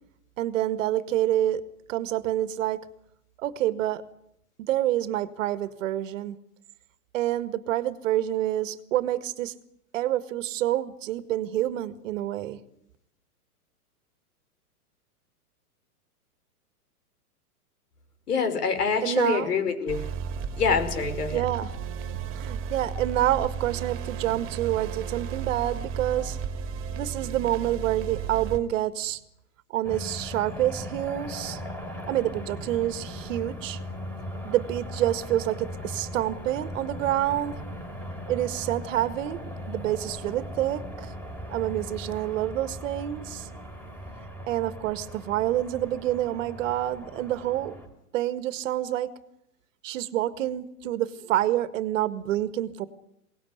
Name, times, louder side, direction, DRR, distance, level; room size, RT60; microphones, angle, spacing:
voice 1, 0.4-1.6 1.9-2.8 3.4-4.0 4.6-6.4 7.1-9.5 9.9-12.6 19.0-19.7 21.3-21.7 22.3-26.4 26.9-29.2 29.7-31.6 32.1-33.8 34.4-37.6 38.3-39.4 39.7-41.1 41.5-43.5 44.5-47.8 48.1-49.1 49.8-52.9, right 13 dB, 55° right, 13 dB, 1.8 m, -27 dB
voice 2, 18.3-20.1 20.6-21.4, left 5 dB, 85° left, 9 dB, 5.4 m, -26 dB
sound 1, 19.9-28.6, right 7 dB, 30° right, 2.4 m, -34 dB
sound 2, 29.8-47.9, equal, 5° left, 4.4 m, -38 dB
22.0 x 19.0 x 9.5 m, 0.78 s
hypercardioid pair, 140°, 45 cm